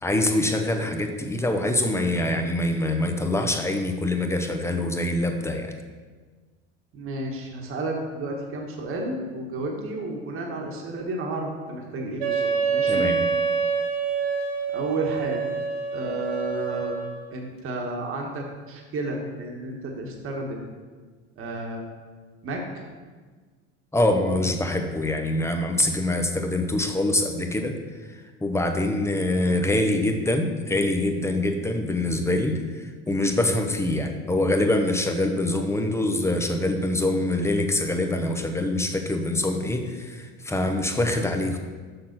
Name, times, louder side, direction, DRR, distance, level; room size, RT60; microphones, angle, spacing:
voice 1, 0.0-5.7 12.9-13.2 23.9-27.8 28.0-41.6, left 1 dB, 10° left, 5 dB, 0.9 m, -24 dB
voice 2, 6.9-13.1 14.7-15.4 15.9-17.0 17.3-20.6 21.4-21.9 22.4-22.6, right 2 dB, 45° right, 0 dB, 1.6 m, -32 dB
Wind instrument woodwind instrument, 12.2-17.3, right 5 dB, 85° right, 1.5 m, -26 dB
6.7 x 6.0 x 6.0 m, 1.4 s
supercardioid pair, 105°, 30 cm